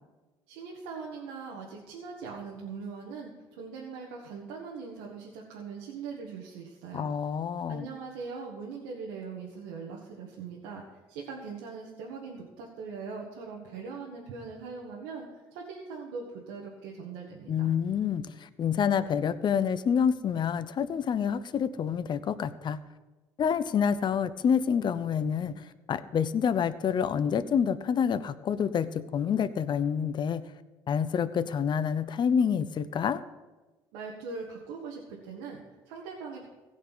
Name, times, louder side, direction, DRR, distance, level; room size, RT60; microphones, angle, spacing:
voice 1, 0.5-7.1 7.7-17.7 33.9-36.5, right 5 dB, 85° right, -2 dB, 1.8 m, -41 dB
voice 2, 6.9-7.9 17.5-22.8 23.4-25.6 25.9-30.4 30.9-33.2, left 7 dB, 45° left, 13 dB, 0.8 m, -27 dB
16.0 x 5.4 x 9.2 m, 1.2 s
supercardioid pair, 75°, 10 cm